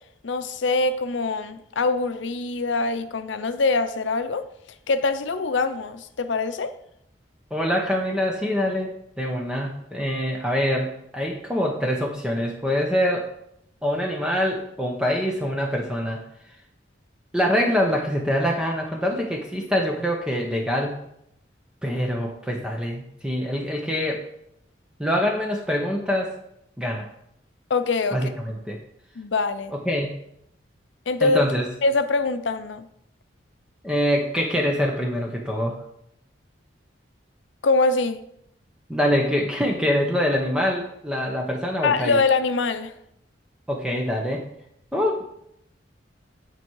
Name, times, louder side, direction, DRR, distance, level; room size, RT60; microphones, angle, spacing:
voice 1, 0.2-4.5 4.9-6.7 27.7-28.3 29.2-29.7 31.1-31.4 31.8-32.8 37.6-38.2 41.8-42.9, left 3 dB, 75° left, 0.6 m, -23 dB
voice 2, 7.5-13.3 13.8-16.2 17.3-21.0 21.8-24.2 25.0-26.4 26.8-27.1 28.1-28.8 29.7-30.1 31.2-31.7 33.8-35.8 38.9-42.2 43.7-44.5 44.9-45.3, equal, 5° right, 0.7 m, -24 dB
9.0 x 4.7 x 4.6 m
head